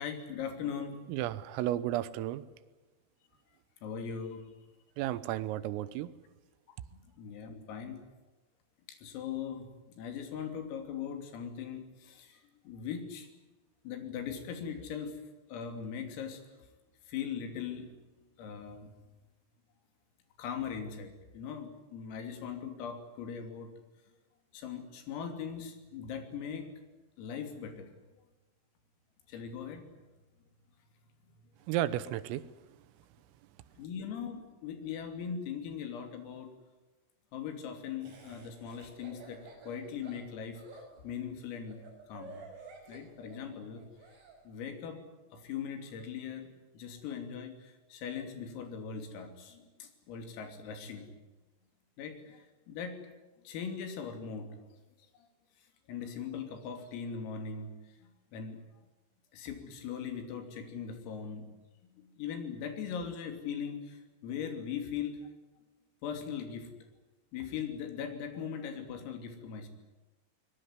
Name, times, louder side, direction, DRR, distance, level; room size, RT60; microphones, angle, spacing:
voice 1, 0.0-1.0 3.8-4.5 6.9-8.0 8.9-9.7 10.0-13.3 13.9-15.2 15.5-16.4 17.1-17.9 18.4-18.9 20.4-23.7 24.5-26.7 27.2-27.9 29.3-29.8 33.8-36.5 37.3-40.6 41.0-41.8 42.1-42.4 42.9-43.8 44.5-45.0 45.3-46.5 46.7-51.1 52.0-53.1 53.5-54.5 55.9-57.7 58.0-58.6 59.3-61.5 61.9-65.2 66.0-66.7 67.3-69.7, left 7 dB, 85° left, 6 dB, 5.6 m, -40 dB
voice 2, 1.1-2.4 5.0-6.1 31.7-32.4, right 13 dB, 85° right, 15 dB, 3.6 m, -33 dB
Laughter, 38.0-44.4, right 3 dB, 55° right, 7.5 m, -52 dB
23.0 x 21.5 x 9.7 m, 1.2 s
omnidirectional pair, 5.9 m